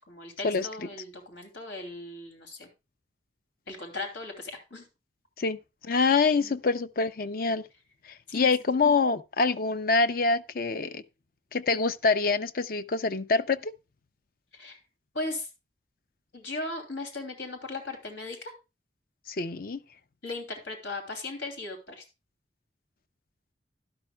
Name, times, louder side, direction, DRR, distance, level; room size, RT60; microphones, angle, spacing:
voice 1, 0.1-2.7 3.7-4.8 6.4-6.6 8.3-8.5 14.5-14.8 15.1-15.5 16.3-18.5 20.2-22.0, left 2 dB, 85° left, 2.9 m, -37 dB
voice 2, 5.8-7.6 8.3-11.0 11.5-13.7 19.3-19.8, left 4 dB, 50° left, 0.6 m, -25 dB
12.0 x 12.0 x 2.3 m
head